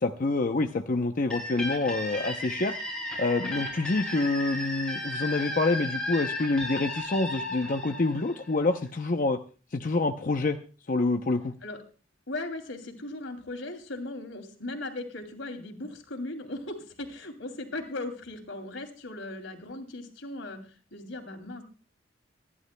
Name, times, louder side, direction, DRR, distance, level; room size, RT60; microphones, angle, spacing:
voice 1, 0.0-2.7 3.2-9.4 9.7-10.6 10.9-11.5, left 3 dB, 45° left, 5 dB, 0.7 m, -27 dB
sound 1, 1.3-8.9, left 1 dB, 5° left, 7.1 m, -35 dB
voice 2, 12.3-20.6 20.9-21.6, left 2 dB, 85° left, 6 dB, 2.8 m, -38 dB
27.0 x 11.0 x 2.2 m, 0.37 s
head